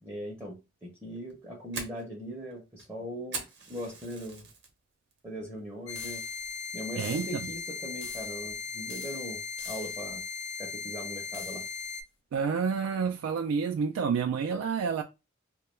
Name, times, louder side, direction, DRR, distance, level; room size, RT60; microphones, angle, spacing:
voice 1, 0.0-4.5 5.2-6.2 6.7-10.2 10.6-11.6, equal, 10° right, 0.5 m, -40 dB
Fire, 1.2-4.7 5.1-5.5 5.9-6.0 6.5-6.9, right 4 dB, 50° right, 0.7 m, -41 dB
sound 1, 5.9-12.0, left 5 dB, 90° left, 0.8 m, -38 dB
sound 2, 5.9-6.5 7.0-7.6 8.0-8.6 8.9-10.2 11.3-11.8, left 6 dB, 55° left, 0.5 m, -47 dB
voice 2, 7.0-7.3 12.3-15.0, right 6 dB, 90° right, 0.3 m, -29 dB
2.2 x 2.2 x 3.0 m
head